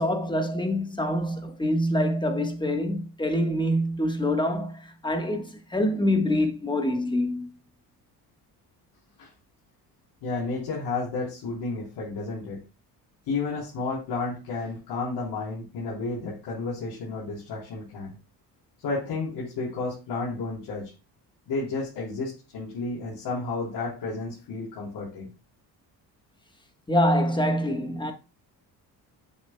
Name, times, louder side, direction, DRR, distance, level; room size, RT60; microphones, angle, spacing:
voice 1, 0.0-7.5 26.9-28.1, left 1 dB, 10° left, 1.3 m, -25 dB
voice 2, 10.2-12.6 13.3-18.1 18.8-20.9 21.5-25.3, left 3 dB, 80° left, 3.7 m, -32 dB
8.4 x 7.2 x 2.2 m
cardioid pair, 105°, 41 cm